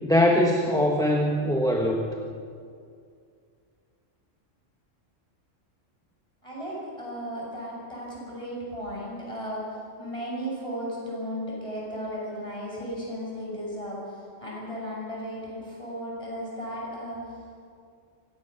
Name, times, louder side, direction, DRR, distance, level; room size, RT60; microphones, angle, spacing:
voice 1, 0.0-2.1, left 1 dB, 5° left, 0 dB, 1.3 m, -22 dB
voice 2, 6.4-17.4, equal, 25° left, -5 dB, 7.0 m, -35 dB
25.0 x 15.5 x 6.7 m, 2.3 s
omnidirectional pair, 1.3 m